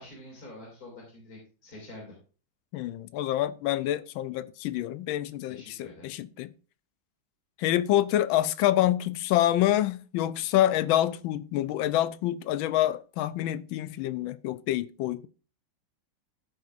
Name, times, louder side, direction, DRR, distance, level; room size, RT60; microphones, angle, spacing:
voice 1, 0.0-2.1 5.4-6.1, left 1 dB, 45° left, 3.3 m, -47 dB
voice 2, 2.7-6.5 7.6-15.3, left 13 dB, 80° left, 1.4 m, -27 dB
14.5 x 6.5 x 2.5 m
omnidirectional pair, 2.2 m